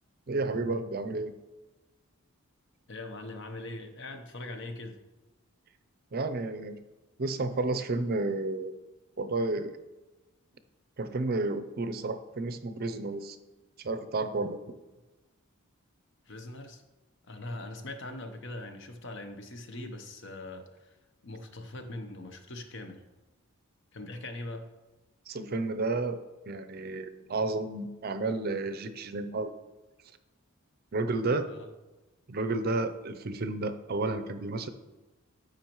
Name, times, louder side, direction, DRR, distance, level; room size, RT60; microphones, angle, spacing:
voice 1, 0.3-1.3 6.1-6.8 7.2-8.7 9.2-9.7 11.0-13.4 13.8-14.7 25.3-29.5 30.9-31.5 32.3-34.7, right 2 dB, 45° right, 10 dB, 0.5 m, -31 dB
voice 2, 2.9-5.0 16.2-16.8 17.3-21.0 21.2-23.0 23.9-24.7 31.5-31.7, left 2 dB, 55° left, 6 dB, 0.9 m, -41 dB
13.5 x 5.2 x 3.0 m, 1.1 s
head